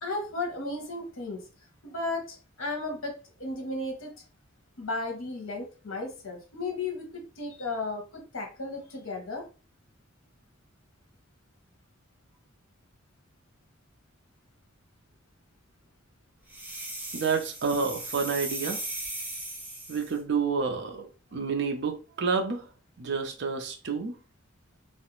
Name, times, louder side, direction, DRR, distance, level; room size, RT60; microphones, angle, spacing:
voice 1, 0.0-1.4 1.8-4.2 4.8-9.4, left 2 dB, 70° left, 0.8 m, -34 dB
sound 1, 16.5-20.2, right 2 dB, 5° right, 0.5 m, -37 dB
voice 2, 17.1-18.8 19.9-21.1 21.3-22.7 23.0-24.1, right 5 dB, 55° right, 0.5 m, -29 dB
2.4 x 2.0 x 2.9 m
head